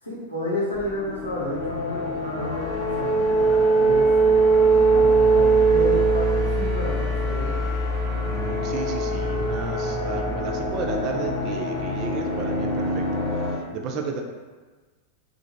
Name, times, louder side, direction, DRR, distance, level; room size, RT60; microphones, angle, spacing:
voice 1, 0.0-7.6, left 1 dB, 85° left, -6 dB, 0.7 m, -31 dB
sound 1, 0.8-13.6, right 2 dB, 10° left, 0.8 m, -22 dB
voice 2, 8.3-14.2, right 4 dB, 40° right, 3 dB, 0.3 m, -33 dB
2.4 x 2.1 x 2.9 m, 1.3 s
figure-of-eight pair, 90°, 0 cm